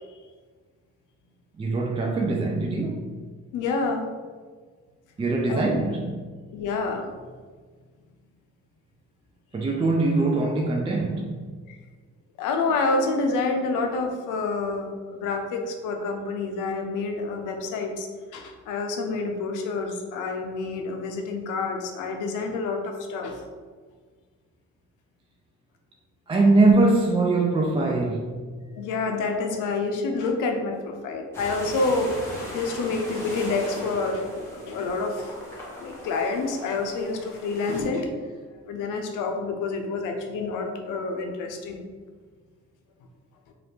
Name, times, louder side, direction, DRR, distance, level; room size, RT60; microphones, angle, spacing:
voice 1, 1.6-3.1 5.2-6.2 9.5-11.4 26.3-28.4, right 2 dB, 20° right, 0 dB, 0.3 m, -22 dB
voice 2, 3.5-4.1 5.5-5.7 6.5-7.1 11.7-11.8 12.4-18.1 18.3-23.4 28.6-35.3 35.7-38.2 38.7-41.9, left 3 dB, 90° left, 3 dB, 0.5 m, -28 dB
sound 1, 31.3-37.8, equal, 10° left, 1.0 m, -38 dB
2.7 x 2.5 x 3.3 m, 1.5 s
cardioid pair, 90°, 30 cm